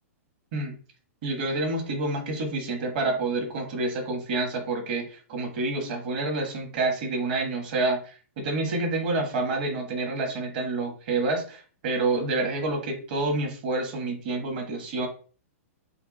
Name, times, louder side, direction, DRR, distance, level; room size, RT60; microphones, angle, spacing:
voice 1, 1.2-15.1, right 2 dB, 40° right, 3 dB, 1.3 m, -28 dB
5.6 x 2.2 x 4.1 m, 0.40 s
hypercardioid pair, 170°, 8 cm